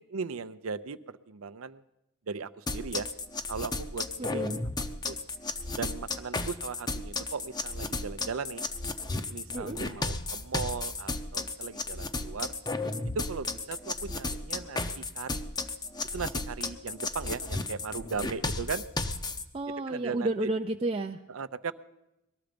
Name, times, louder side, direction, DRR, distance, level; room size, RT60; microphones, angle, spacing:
voice 1, 0.1-1.8 2.3-3.1 3.5-4.4 5.1-5.2 5.8-8.6 9.3-12.5 13.1-15.5 16.1-18.8 19.9-20.3 21.3-21.7, right 5 dB, 75° right, 14 dB, 0.6 m, -37 dB
sound 1, 2.7-19.4, left 3 dB, 20° left, 0.7 m, -34 dB
voice 2, 4.2-4.6 9.5-9.8 19.5-21.2, right 2 dB, 25° right, 3 dB, 0.5 m, -31 dB
19.5 x 13.0 x 5.1 m, 0.91 s
head